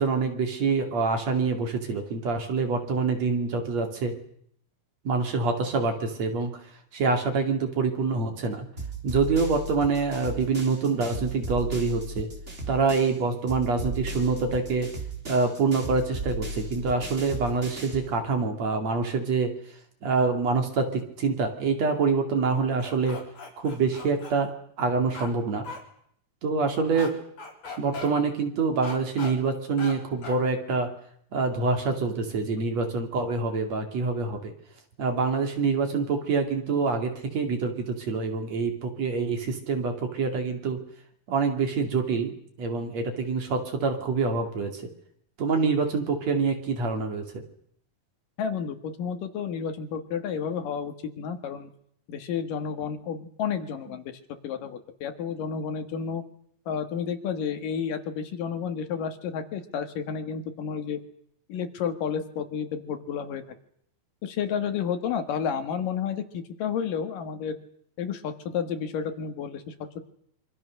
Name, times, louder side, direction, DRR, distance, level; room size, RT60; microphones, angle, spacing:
voice 1, 0.0-4.2 5.1-6.5 6.9-8.7 9.0-12.3 12.7-14.9 15.3-19.5 20.0-23.2 23.6-24.5 24.8-25.7 26.4-27.1 27.8-30.9 31.3-34.5 35.0-40.8 41.3-44.8 45.4-47.4, right 4 dB, 55° right, 5 dB, 3.6 m, -26 dB
sound 1, 8.8-13.2 13.5-18.1, right 2 dB, 20° right, 3.5 m, -36 dB
sound 2, 22.8-24.3 25.1-25.3 25.6-25.8 26.9-27.1 27.4-28.1 28.8-29.3 29.8-29.9 30.2-30.4, left 3 dB, 50° left, 5.2 m, -38 dB
voice 2, 48.4-51.7 52.1-56.2 56.7-61.0 61.5-63.5 64.2-67.6 68.0-70.0, left 7 dB, 75° left, 8 dB, 3.3 m, -31 dB
26.5 x 24.5 x 6.5 m, 0.68 s
omnidirectional pair, 3.9 m